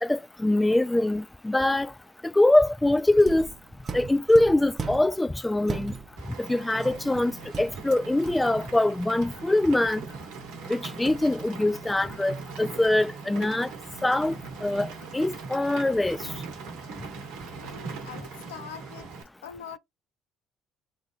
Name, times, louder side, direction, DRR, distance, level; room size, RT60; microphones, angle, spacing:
voice 1, 0.0-1.9 2.3-3.5 3.9-5.9 6.4-7.3 7.6-10.0 10.7-13.7 14.0-14.9 15.1-16.2, left 1 dB, 10° left, 0.4 m, -23 dB
sound 1, 3.2-5.2 5.6-6.3 6.8-8.6, right 5 dB, 40° right, 0.6 m, -38 dB
Rain, 6.2-19.2, right 4 dB, 75° right, 0.9 m, -40 dB
voice 2, 17.5-19.1 19.4-19.8, left 8 dB, 85° left, 0.4 m, -43 dB
2.7 x 2.4 x 3.9 m
hypercardioid pair, 50°, 0 cm